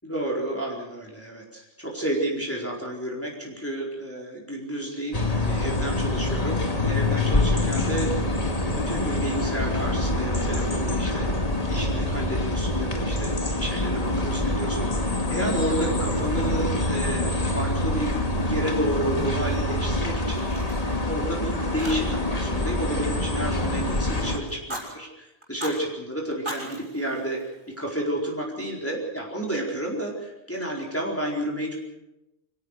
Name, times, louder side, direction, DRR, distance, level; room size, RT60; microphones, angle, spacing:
voice 1, 0.0-8.6 8.9-25.1 25.5-31.8, right 1 dB, 10° left, -2 dB, 4.4 m, -31 dB
sound 1, 5.1-24.4, left 2 dB, 35° left, 2.1 m, -25 dB
Fire, 18.8-19.9 20.1-21.4 21.8-22.4 22.6-24.0 24.5-24.9 25.4-25.8 26.3-27.9, right 1 dB, 25° right, 6.4 m, -39 dB
25.5 x 17.0 x 6.6 m, 0.93 s
omnidirectional pair, 1.1 m